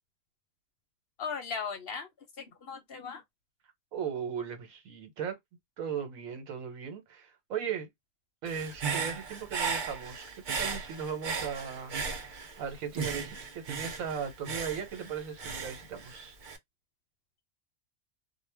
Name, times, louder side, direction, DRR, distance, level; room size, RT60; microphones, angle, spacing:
voice 1, 1.2-2.1 2.4-3.2, left 5 dB, 55° left, 0.7 m, -37 dB
voice 2, 3.9-5.4 5.8-7.9 8.4-12.3 12.6-16.3, right 7 dB, 80° right, 1.2 m, -37 dB
Human voice / Breathing, 8.5-12.6 12.9-16.6, right 5 dB, 50° right, 0.6 m, -36 dB
2.3 x 2.1 x 3.2 m
omnidirectional pair, 1.4 m